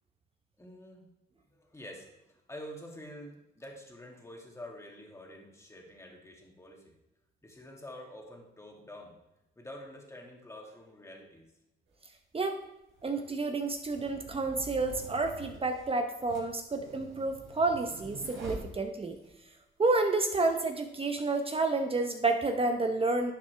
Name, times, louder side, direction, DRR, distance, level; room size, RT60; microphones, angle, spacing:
voice 1, 0.6-1.0 1.5-2.1 2.5-6.9 7.4-9.2 9.6-11.5, left 1 dB, 15° left, -1 dB, 2.3 m, -47 dB
sound 1, 11.9-12.0 12.9-19.3, right 3 dB, 75° right, 3.5 m, -47 dB
voice 2, 13.0-19.2 19.8-23.3, right 3 dB, 30° right, 5 dB, 1.0 m, -30 dB
11.5 x 7.1 x 3.5 m, 0.91 s
cardioid pair, 90°, 20 cm